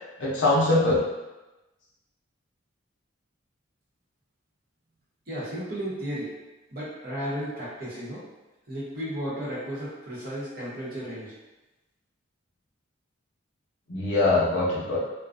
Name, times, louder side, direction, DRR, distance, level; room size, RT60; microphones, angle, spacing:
voice 1, 0.2-1.0 13.9-15.0, left 2 dB, 60° left, -6 dB, 0.6 m, -22 dB
voice 2, 5.3-6.3 6.7-8.2 8.7-11.3, equal, 45° right, -8 dB, 0.9 m, -34 dB
2.4 x 2.2 x 2.4 m, 1.1 s
head